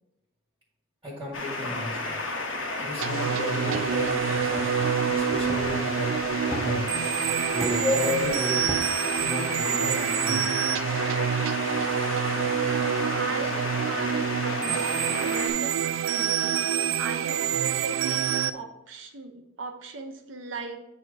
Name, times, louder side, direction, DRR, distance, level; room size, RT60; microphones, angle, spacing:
voice 1, 1.0-2.2 2.8-6.2 6.4-7.0 7.5-8.7 9.2-10.5, left 1 dB, 15° right, -4 dB, 1.5 m, -34 dB
sound 1, 1.3-15.5, left 2 dB, 75° left, 1.2 m, -32 dB
sound 2, 3.0-18.5, right 8 dB, 85° right, 0.3 m, -27 dB
sound 3, 3.7-7.1 7.5-9.2, left 2 dB, 5° left, 0.4 m, -32 dB
voice 2, 12.3-16.7 17.0-20.8, right 3 dB, 70° right, 5 dB, 0.8 m, -39 dB
8.2 x 3.0 x 4.8 m, 0.89 s
head